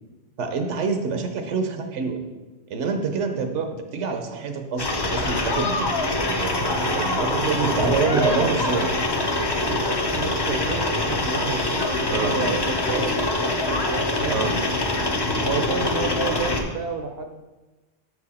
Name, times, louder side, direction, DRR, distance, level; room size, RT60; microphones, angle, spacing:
voice 1, 0.4-2.2 2.7-3.5 3.9-8.9 12.1-12.3 14.3-14.5 15.3-15.5, right 4 dB, 80° right, 5 dB, 1.1 m, -27 dB
voice 2, 3.3-3.7 7.3-9.0 9.5-14.5 15.4-17.4, right 4 dB, 65° right, 5 dB, 0.8 m, -30 dB
sound 1, 4.8-16.6, left 2 dB, 35° left, 0.4 m, -24 dB
6.8 x 4.8 x 4.1 m, 1.2 s
omnidirectional pair, 1.2 m